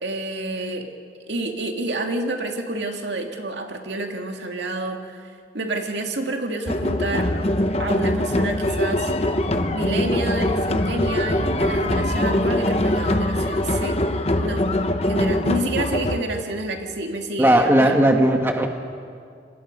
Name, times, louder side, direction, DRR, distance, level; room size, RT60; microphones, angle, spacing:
voice 1, 0.0-0.9 1.3-7.3 7.8-9.1 9.7-14.0 14.4-18.1, right 2 dB, 80° right, 3 dB, 2.4 m, -29 dB
sound 1, 6.7-16.2, left 1 dB, 35° left, 1.1 m, -22 dB
voice 2, 17.4-18.7, right 1 dB, 10° right, 3 dB, 1.4 m, -17 dB
28.5 x 24.5 x 5.4 m, 2.2 s
head